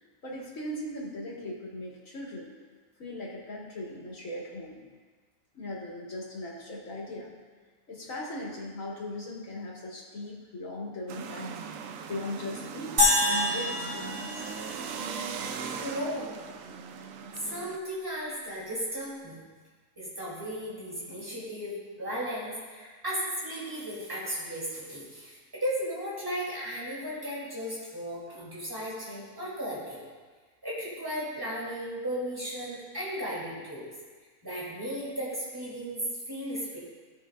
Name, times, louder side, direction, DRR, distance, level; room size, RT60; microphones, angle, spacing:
voice 1, 0.2-2.5 3.0-4.8 5.5-7.3 7.9-11.5 12.1-13.0 13.3-14.5, left 1 dB, 60° left, -4 dB, 2.1 m, -38 dB
sound 1, 11.1-17.8, right 6 dB, 70° right, 0.9 m, -39 dB
sound 2, 13.0-15.4, left 1 dB, 35° right, 2.4 m, -27 dB
voice 2, 15.8-16.3 17.4-19.4 20.0-30.0 30.6-33.9 34.4-36.0 36.3-36.8, equal, 15° right, -8 dB, 2.9 m, -35 dB
16.0 x 5.7 x 2.4 m, 1.4 s
omnidirectional pair, 1.6 m